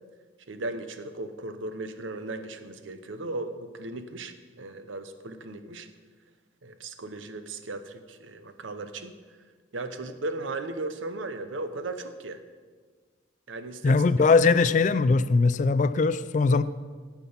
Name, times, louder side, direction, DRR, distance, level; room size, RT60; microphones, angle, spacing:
voice 1, 0.5-5.9 6.6-9.1 9.7-12.4 13.5-13.9, right 2 dB, 85° right, 10 dB, 0.8 m, -36 dB
voice 2, 13.8-16.6, left 4 dB, 40° left, 15 dB, 0.3 m, -21 dB
16.5 x 5.9 x 5.4 m, 1.5 s
head